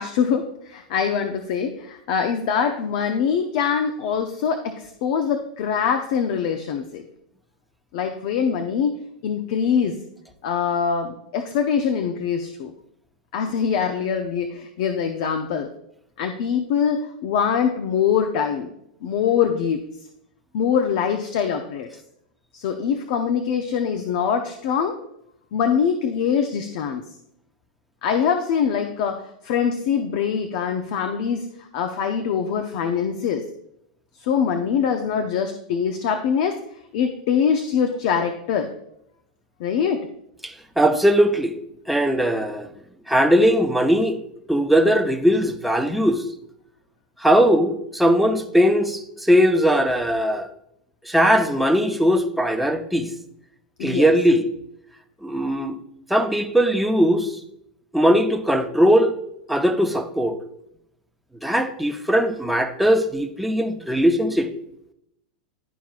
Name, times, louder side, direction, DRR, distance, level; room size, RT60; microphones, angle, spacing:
voice 1, 0.0-7.0 7.9-8.9 9.2-10.0 10.4-12.7 13.3-15.7 16.2-18.7 19.0-19.9 20.5-21.9 22.5-25.0 25.5-27.0 28.0-33.5 34.2-36.6 36.9-38.7 39.6-40.1 53.8-54.1, left 7 dB, 60° left, 6 dB, 0.6 m, -23 dB
voice 2, 40.4-41.5 41.9-42.7 43.1-44.2 44.5-46.2 47.2-50.5 51.1-53.1 53.8-54.5 55.2-55.8 56.1-57.4 57.9-59.1 59.5-60.3 61.4-64.5, equal, ahead, 4 dB, 0.8 m, -19 dB
12.0 x 4.6 x 2.4 m, 0.79 s
hypercardioid pair, 105°, 4 cm